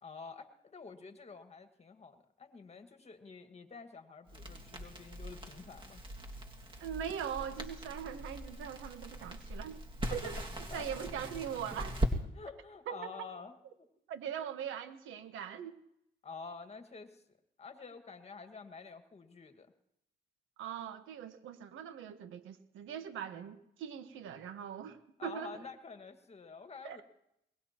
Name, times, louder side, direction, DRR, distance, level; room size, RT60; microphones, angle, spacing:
voice 1, 0.0-6.0 10.1-10.2 10.7-10.9 12.3-13.9 16.2-19.7 25.2-27.0, left 5 dB, 30° left, 7 dB, 1.8 m, -49 dB
Crackle, 4.3-12.1, equal, 25° right, 2.1 m, -40 dB
voice 2, 6.8-9.8 10.1-10.4 10.7-12.0 12.9-13.3 14.1-15.7 20.6-25.6 26.8-27.0, right 9 dB, 85° right, 9 dB, 1.3 m, -41 dB
22.0 x 20.0 x 3.0 m, 0.79 s
cardioid pair, 90°, 20 cm